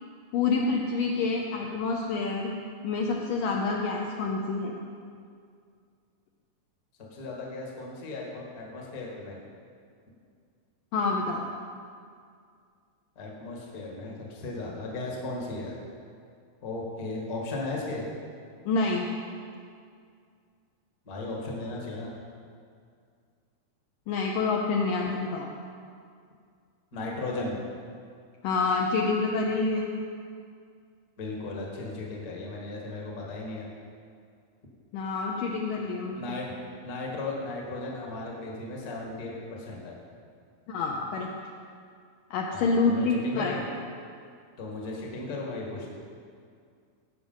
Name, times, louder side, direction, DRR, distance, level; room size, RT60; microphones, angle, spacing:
voice 1, 0.3-2.6 2.8-4.7 10.9-11.4 18.7-19.1 24.1-25.5 28.4-29.9 34.9-36.2 40.7-41.3 42.3-43.5, left 4 dB, 75° left, 0 dB, 2.1 m, -27 dB
voice 2, 7.1-9.4 13.1-15.8 16.6-18.0 21.0-22.1 26.9-27.5 31.2-33.7 36.2-36.5 36.8-39.9 42.5-43.6 44.6-45.9, left 2 dB, 40° left, -2 dB, 1.4 m, -36 dB
17.0 x 6.2 x 5.4 m, 2.2 s
omnidirectional pair, 4.5 m